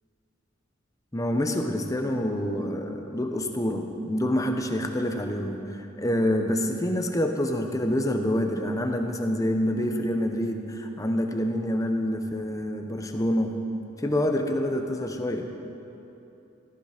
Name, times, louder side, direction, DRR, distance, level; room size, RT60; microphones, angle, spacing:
voice 1, 1.1-13.6 14.0-15.5, left 1 dB, 20° left, 4 dB, 0.9 m, -27 dB
15.0 x 14.0 x 5.1 m, 2.9 s
head